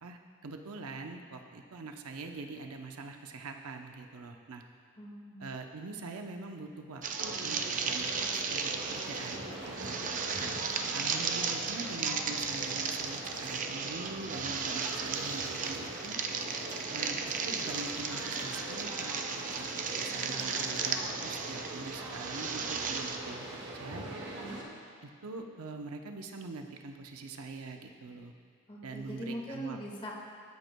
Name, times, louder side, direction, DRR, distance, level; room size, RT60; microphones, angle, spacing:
voice 1, 0.0-4.6 5.4-10.0 10.4-10.5 10.9-16.2 16.9-19.2 19.6-19.7 19.9-23.5 23.7-24.1 25.0-28.3 28.8-29.8, right 3 dB, 80° right, 4 dB, 0.7 m, -44 dB
voice 2, 5.0-5.6 24.3-24.6 28.7-30.1, equal, 25° left, -2 dB, 1.5 m, -42 dB
sound 1, 7.0-23.2, right 5 dB, 35° right, 0.5 m, -35 dB
sound 2, 7.2-24.6, right 1 dB, 55° right, 1.6 m, -42 dB
Tools, 8.5-13.7 14.0-14.1 14.3-21.9, right 1 dB, 10° right, 1.0 m, -56 dB
21.5 x 8.0 x 2.2 m, 2.2 s
head